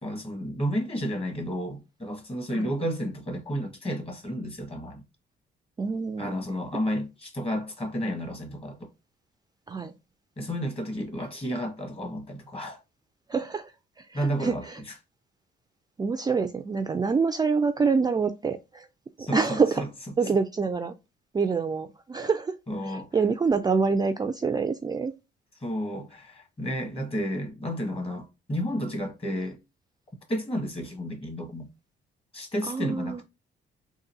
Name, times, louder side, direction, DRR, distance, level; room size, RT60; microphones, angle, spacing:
voice 1, 0.0-5.0 6.2-8.9 10.4-12.8 14.1-14.6 19.2-19.9 22.7-23.1 25.6-29.6 30.3-31.7 32.3-33.2, equal, 30° left, 1.5 m, -31 dB
voice 2, 5.8-6.4 9.7-9.9 13.3-13.7 14.0-14.8 16.0-18.9 19.2-19.8 20.2-20.9 21.3-22.6 22.8-25.1 32.7-33.2, right 5 dB, 20° right, 0.3 m, -26 dB
3.8 x 2.6 x 2.6 m
cardioid pair, 90°, 20 cm